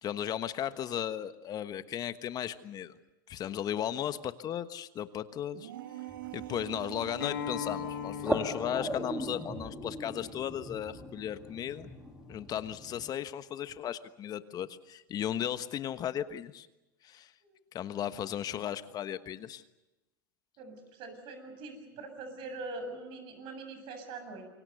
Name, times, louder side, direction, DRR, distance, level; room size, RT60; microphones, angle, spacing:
voice 1, 0.0-2.9 3.3-5.7 6.3-11.9 12.3-16.7 17.0-17.3 17.7-19.6, left 10 dB, 35° left, 12 dB, 1.2 m, -36 dB
sound 1, 5.5-8.5, right 12 dB, 80° right, 1.4 m, -43 dB
sound 2, 6.1-13.1, right 1 dB, 5° right, 2.5 m, -40 dB
Acoustic guitar, 7.2-12.4, left 11 dB, 85° left, 2.7 m, -42 dB
voice 2, 20.6-24.5, right 3 dB, 50° right, 7 dB, 7.7 m, -43 dB
27.5 x 24.0 x 6.9 m, 1.0 s
hypercardioid pair, 105°, 11 cm